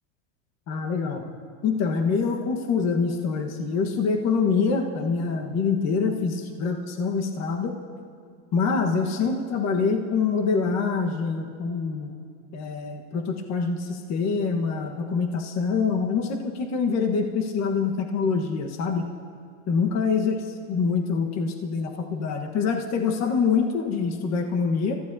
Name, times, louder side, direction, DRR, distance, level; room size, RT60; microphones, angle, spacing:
voice 1, 0.7-1.3 1.6-7.7 8.5-12.1 12.5-19.1 19.7-20.4 20.7-25.0, left 5 dB, 45° left, 3 dB, 1.4 m, -25 dB
28.5 x 14.5 x 2.8 m, 2.2 s
supercardioid pair, 120°, 38 cm